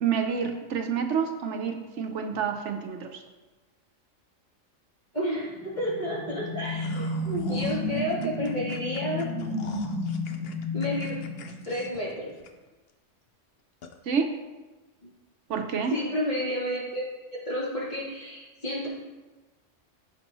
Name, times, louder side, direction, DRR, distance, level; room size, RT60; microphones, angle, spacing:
voice 1, 0.0-3.2 14.1-14.3 15.5-16.0, right 6 dB, 75° right, 5 dB, 1.0 m, -28 dB
voice 2, 5.1-9.3 10.7-11.2 11.6-12.3 15.9-17.0 17.3-18.9, equal, 35° left, -9 dB, 3.3 m, -31 dB
sound 1, 5.6-12.1, left 2 dB, 5° left, 1.1 m, -32 dB
sound 2, 6.6-12.9 13.3-13.4 13.8-14.0, left 5 dB, 55° left, 0.9 m, -46 dB
15.5 x 5.3 x 3.1 m, 1.2 s
omnidirectional pair, 1.3 m